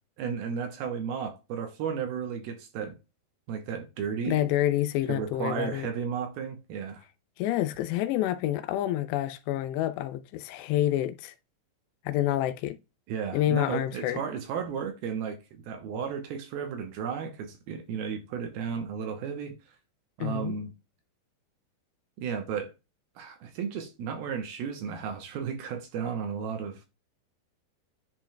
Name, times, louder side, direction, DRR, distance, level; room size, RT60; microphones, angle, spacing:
voice 1, 0.2-3.0 3.5-4.4 5.1-7.1 13.1-19.6 20.2-20.7 22.2-22.7 23.2-26.9, right 7 dB, 75° right, 2.5 m, -34 dB
voice 2, 4.3-5.9 7.4-11.3 12.1-12.8 13.3-14.2 20.2-20.6, left 13 dB, 90° left, 2.8 m, -28 dB
10.5 x 4.6 x 2.2 m
omnidirectional pair, 4.8 m